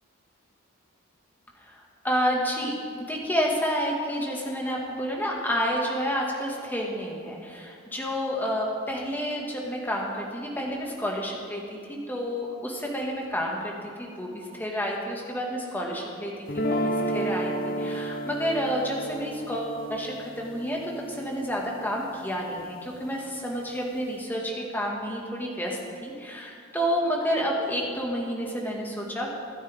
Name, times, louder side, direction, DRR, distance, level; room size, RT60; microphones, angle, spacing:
voice 1, 1.6-29.3, equal, 10° left, -2 dB, 2.1 m, -30 dB
sound 1, 16.5-22.6, right 1 dB, 45° left, 1.0 m, -32 dB
25.5 x 9.4 x 3.7 m, 2.4 s
head